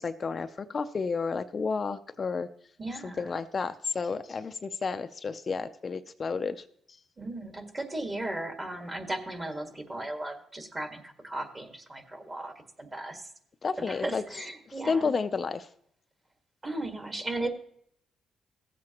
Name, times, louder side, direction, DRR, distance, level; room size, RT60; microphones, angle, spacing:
voice 1, 0.0-2.5 3.0-7.0 13.6-14.2 14.7-15.7, left 4 dB, 40° left, 9 dB, 0.4 m, -31 dB
voice 2, 2.8-3.3 7.2-12.5 12.8-13.2 13.9-15.1 16.6-17.5, right 2 dB, 25° right, 5 dB, 1.6 m, -36 dB
16.5 x 7.6 x 2.9 m, 0.68 s
cardioid pair, 90°, 0 cm